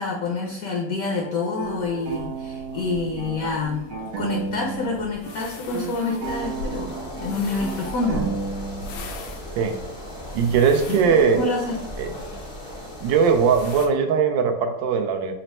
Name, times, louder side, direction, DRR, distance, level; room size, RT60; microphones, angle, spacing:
voice 1, 0.0-3.9 4.2-8.2 11.3-11.8, left 3 dB, 65° left, 0 dB, 0.9 m, -27 dB
sound 1, 1.1-5.0 5.2-9.1, right 4 dB, 60° right, 1.0 m, -33 dB
sound 2, 1.6-13.9, left 2 dB, 80° left, 1.3 m, -42 dB
sound 3, 6.2-13.9, equal, 35° left, 0.5 m, -37 dB
voice 2, 10.3-11.4 12.0-12.1 13.0-15.3, right 6 dB, 85° right, 6 dB, 1.3 m, -20 dB
4.1 x 2.1 x 4.1 m, 0.89 s
omnidirectional pair, 2.0 m